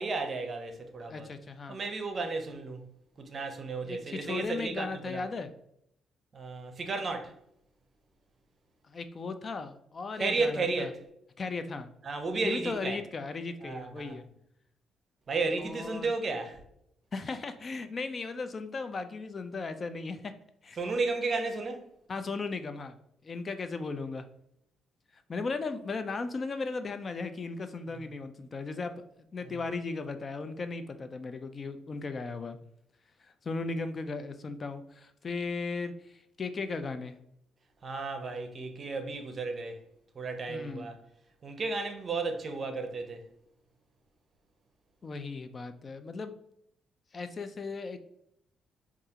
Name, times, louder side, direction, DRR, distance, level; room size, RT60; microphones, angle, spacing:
voice 1, 0.0-1.3 1.7-2.8 3.2-5.2 6.3-7.3 10.2-11.0 12.0-13.0 13.6-14.2 15.3-16.6 20.8-21.8 27.9-28.0 37.8-39.8 40.1-41.0 41.4-43.2, right 3 dB, 40° right, 0.6 m, -33 dB
voice 2, 1.1-1.8 3.8-5.5 8.9-10.9 11.4-11.9 12.4-14.3 15.6-16.1 17.1-20.3 20.6-20.8 22.1-23.0 23.2-24.3 25.1-28.9 29.3-32.6 33.2-37.2 40.5-40.9 45.0-46.3 47.1-48.0, left 4 dB, 40° left, 0.3 m, -36 dB
4.7 x 2.4 x 2.7 m
cardioid pair, 90°, 0 cm